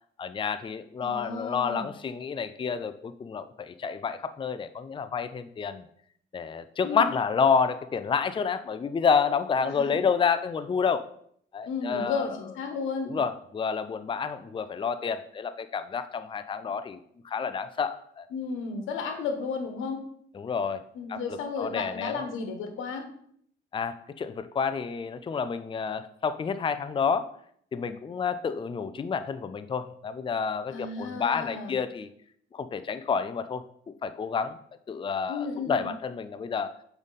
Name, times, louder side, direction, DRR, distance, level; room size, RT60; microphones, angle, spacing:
voice 1, 0.2-5.8 6.3-11.0 11.5-12.3 13.1-18.3 20.3-20.8 21.1-22.1 23.7-27.3 27.7-32.1 32.5-34.6 34.9-36.7, left 6 dB, 25° left, 11 dB, 0.4 m, -29 dB
voice 2, 1.0-1.9 6.8-7.1 9.6-10.0 11.6-13.1 18.3-20.0 20.9-23.1 30.7-31.8 35.3-35.9, left 5 dB, 90° left, 5 dB, 1.3 m, -33 dB
7.0 x 5.2 x 4.1 m, 0.65 s
cardioid pair, 90°, 20 cm